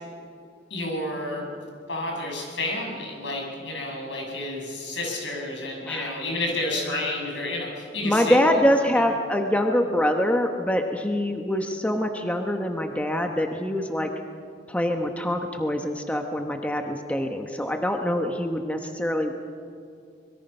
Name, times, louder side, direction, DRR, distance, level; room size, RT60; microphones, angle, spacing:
voice 1, 0.7-1.5 1.9-8.5, left 2 dB, 75° left, 0 dB, 6.4 m, -30 dB
voice 2, 5.9-6.2 8.0-14.1 14.7-19.3, equal, 10° left, 4 dB, 1.0 m, -24 dB
24.5 x 22.5 x 5.6 m, 2.5 s
head